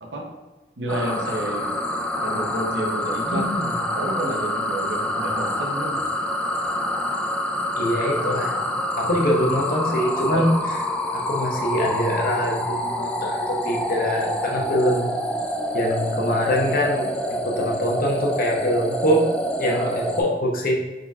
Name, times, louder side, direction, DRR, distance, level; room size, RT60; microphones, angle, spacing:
voice 1, 0.8-1.8 2.2-3.4 4.0-6.0 10.3-10.6 19.7-19.9, right 1 dB, 85° right, 0 dB, 0.8 m, -30 dB
sound 1, 0.9-20.2, left 1 dB, 5° left, 0.4 m, -27 dB
voice 2, 3.3-3.8 7.7-8.5 9.0-10.5 11.1-15.1 15.7-19.3 19.6-20.8, equal, 55° left, -1 dB, 0.8 m, -24 dB
4.2 x 3.8 x 2.3 m, 1.2 s
head